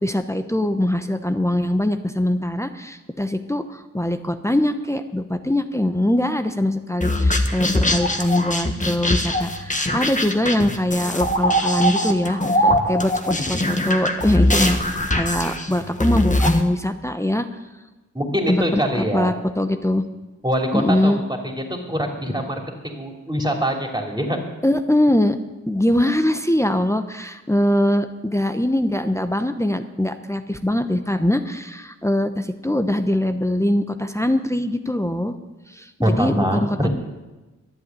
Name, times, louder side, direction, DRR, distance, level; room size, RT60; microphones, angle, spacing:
voice 1, 0.0-14.8 15.1-17.5 18.5-20.1 20.7-21.2 24.6-25.4 25.7-35.4 35.7-36.9, left 1 dB, 10° left, 7 dB, 0.9 m, -22 dB
sound 1, 7.0-16.6, left 1 dB, 25° left, 1.5 m, -21 dB
voice 2, 18.1-19.3 20.4-21.2 21.5-24.4 36.0-36.9, equal, 15° right, 1 dB, 3.1 m, -24 dB
11.5 x 7.9 x 9.6 m, 1.1 s
cardioid pair, 45°, 30 cm